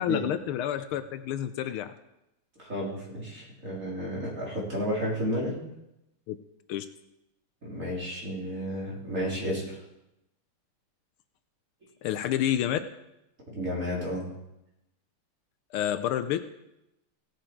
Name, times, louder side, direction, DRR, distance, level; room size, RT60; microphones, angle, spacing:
voice 1, 0.0-1.9 6.3-6.4 6.7-6.9 12.0-12.8 15.7-16.5, left 11 dB, 80° left, 11 dB, 1.4 m, -29 dB
voice 2, 2.6-5.6 7.6-9.8 13.5-14.3, equal, 35° right, -5 dB, 3.7 m, -32 dB
17.0 x 7.6 x 4.5 m, 0.89 s
omnidirectional pair, 2.4 m